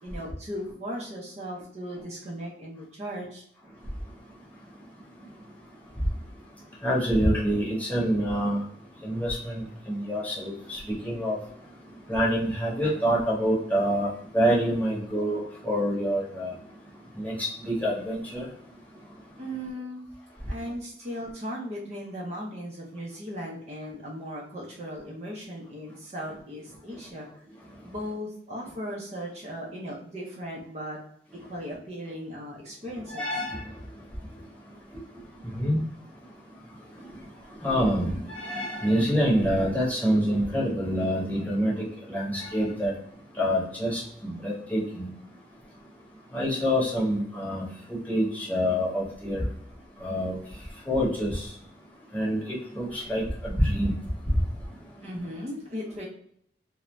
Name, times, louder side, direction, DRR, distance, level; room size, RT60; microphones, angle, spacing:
voice 1, 0.0-3.5 19.4-20.1 20.5-31.0 31.5-33.4 55.0-56.1, equal, 35° right, -3 dB, 0.5 m, -37 dB
voice 2, 6.8-8.6 9.0-11.4 12.1-14.1 14.3-16.5 17.2-18.4 33.1-33.6 35.4-35.8 37.6-41.7 42.1-42.9 43.4-45.1 46.3-47.7 48.1-49.4 50.0-50.4 50.9-51.4 52.1-52.4 52.8-53.9, equal, 10° left, -6 dB, 0.9 m, -26 dB
2.5 x 2.1 x 3.1 m, 0.67 s
head